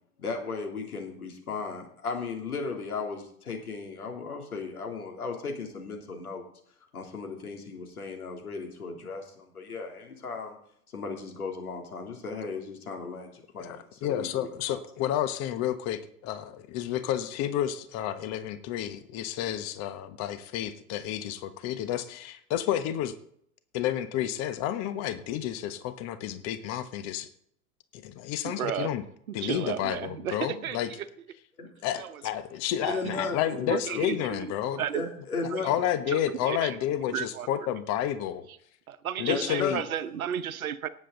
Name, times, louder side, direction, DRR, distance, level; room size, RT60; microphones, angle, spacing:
voice 1, 0.2-6.4 6.9-10.6 10.9-14.8 31.6-31.7 32.9-34.0 34.9-35.7 39.3-39.8, left 4 dB, 80° left, 3.3 m, -36 dB
voice 2, 13.6-23.1 23.7-27.3 27.9-29.0 29.3-30.9 31.8-34.8 35.6-38.5 39.2-39.8, left 11 dB, 35° left, 1.2 m, -30 dB
voice 3, 28.4-28.9 29.4-31.1 32.0-32.2 32.8-33.2 33.7-34.5 34.8-35.0 35.5-35.6 36.1-36.8 37.1-37.5 38.9-40.9, right 9 dB, 70° right, 1.1 m, -33 dB
18.0 x 7.7 x 3.9 m
figure-of-eight pair, 100°, 44 cm